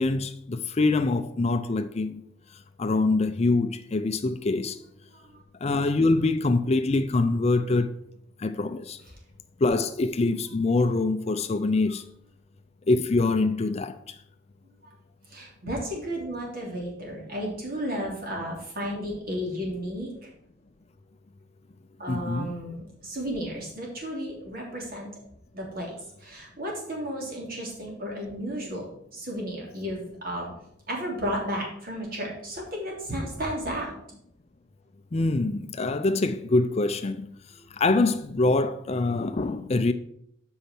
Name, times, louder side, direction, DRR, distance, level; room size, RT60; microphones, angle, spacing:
voice 1, 0.0-2.2 2.8-4.8 5.6-7.9 8.4-9.0 9.6-12.0 12.9-14.2 22.1-22.5 35.1-37.3 37.7-39.9, left 3 dB, 35° left, 0.5 m, -24 dB
voice 2, 15.3-20.3 22.0-25.1 25.5-30.5 30.9-33.9 37.6-37.7, equal, 50° right, 3.0 m, -33 dB
8.4 x 5.5 x 5.9 m
head